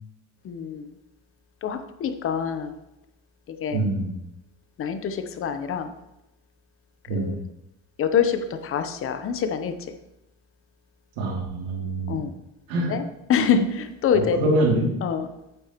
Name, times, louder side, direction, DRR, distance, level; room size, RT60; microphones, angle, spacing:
voice 1, 0.4-0.9 1.6-2.7 3.5-3.8 4.8-5.9 7.1-7.4 8.0-9.7 12.1-12.4 12.7-14.4 15.0-15.3, left 7 dB, 35° left, 9 dB, 0.8 m, -25 dB
voice 2, 3.7-4.2 7.1-7.3 11.2-12.2 12.7-12.9 14.1-14.9, right 2 dB, 70° right, -1 dB, 2.8 m, -24 dB
8.9 x 7.3 x 3.0 m, 0.89 s
cardioid pair, 125°, 36 cm